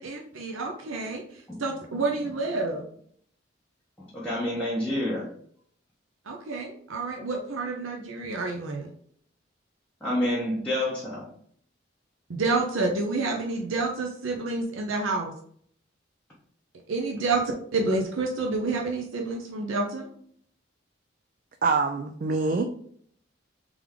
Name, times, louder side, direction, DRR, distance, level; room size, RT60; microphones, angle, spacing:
voice 1, 0.0-2.8 6.3-8.9 12.3-15.3 16.9-20.1, right 3 dB, 90° right, 2 dB, 0.6 m, -29 dB
voice 2, 4.0-5.3 10.0-11.3, left 1 dB, 5° left, -8 dB, 0.9 m, -28 dB
voice 3, 21.6-22.6, right 4 dB, 45° right, 6 dB, 0.3 m, -25 dB
3.5 x 3.4 x 3.5 m, 0.63 s
head